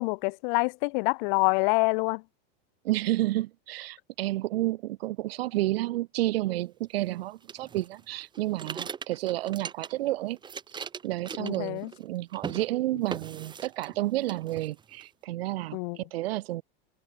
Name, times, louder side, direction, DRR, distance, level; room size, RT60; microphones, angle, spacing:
voice 1, 0.0-2.2 11.4-11.9 15.7-16.0, left 32 dB, 55° left, 1.6 m, -26 dB
voice 2, 2.8-10.4 10.7-16.6, right 16 dB, 85° right, 0.9 m, -31 dB
sound 1, 7.5-10.1 10.4-12.1 12.3-12.7 13.1-14.0 14.3-15.1, right 6 dB, 15° right, 1.5 m, -40 dB
supercardioid pair, 150°, 29 cm